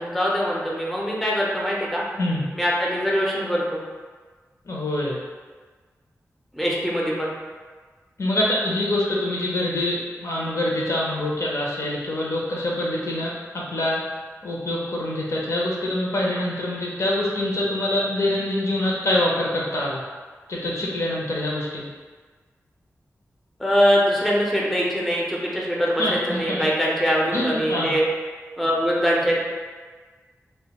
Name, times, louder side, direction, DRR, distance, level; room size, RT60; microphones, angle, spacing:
voice 1, 0.0-2.0 2.5-3.8 6.5-7.3 23.6-28.1 28.6-29.4, equal, ahead, -4 dB, 0.5 m, -22 dB
voice 2, 4.7-5.2 8.2-14.0 14.4-20.0 20.5-21.8 26.0-26.7 27.3-27.9, left 1 dB, 60° left, -4 dB, 0.5 m, -25 dB
2.2 x 2.1 x 2.8 m, 1.4 s
wide cardioid pair, 80°, 6 cm